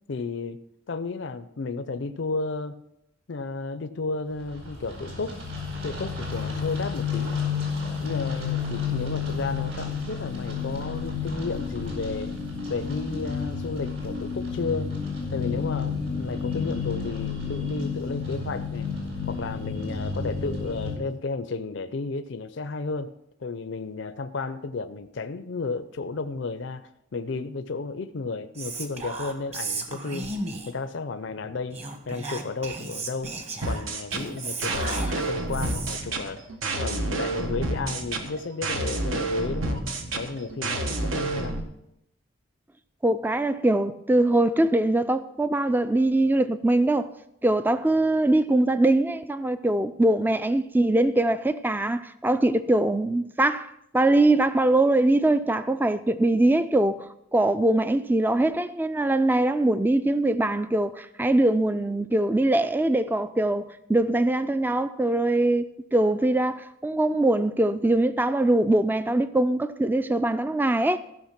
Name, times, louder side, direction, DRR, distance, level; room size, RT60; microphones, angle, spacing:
voice 1, 0.1-0.6 0.9-2.8 3.3-5.4 5.8-7.4 8.0-12.3 12.7-14.9 15.3-18.9 19.3-23.1 23.4-30.3 30.7-31.8 32.1-33.4 33.6-36.4 36.8-39.8 40.1-41.6, left 4 dB, 60° left, 0.5 m, -33 dB
sound 1, 4.4-21.0, left 5 dB, 60° right, 4.6 m, -31 dB
Whispering, 28.5-30.9 31.7-36.1, right 3 dB, 30° right, 1.3 m, -35 dB
sound 2, 33.6-41.6, right 2 dB, 75° right, 1.3 m, -29 dB
voice 2, 43.0-47.1 47.4-65.7 65.9-71.0, right 1 dB, 10° right, 0.3 m, -22 dB
14.5 x 6.2 x 5.9 m
head